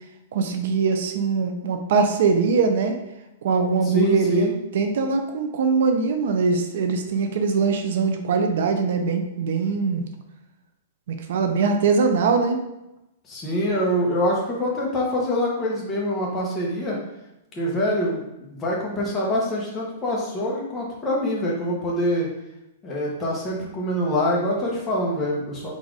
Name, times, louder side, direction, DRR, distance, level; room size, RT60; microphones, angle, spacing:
voice 1, 0.3-3.0 3.4-10.0 11.3-12.6, right 4 dB, 60° right, 5 dB, 0.5 m, -22 dB
voice 2, 3.8-4.5 13.3-17.0 17.5-22.3 22.8-25.7, equal, 15° left, -4 dB, 0.9 m, -25 dB
4.0 x 2.5 x 4.6 m, 0.90 s
supercardioid pair, 170°, 0 cm